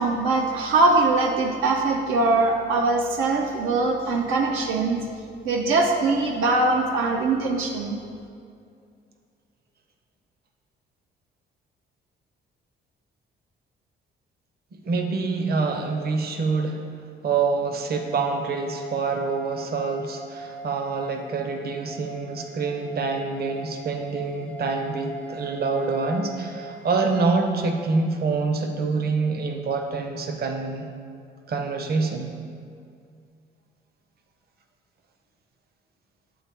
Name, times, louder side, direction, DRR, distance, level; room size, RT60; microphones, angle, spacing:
voice 1, 0.0-5.0 5.4-8.0, right 3 dB, 85° right, 2 dB, 0.5 m, -22 dB
voice 2, 14.8-16.8 17.2-30.9 31.5-32.3, right 4 dB, 50° right, 4 dB, 0.7 m, -26 dB
sound 1, 17.9-27.3, right 2 dB, 5° left, 0.4 m, -41 dB
7.8 x 4.0 x 3.5 m, 2.3 s
cardioid pair, 90°, 20 cm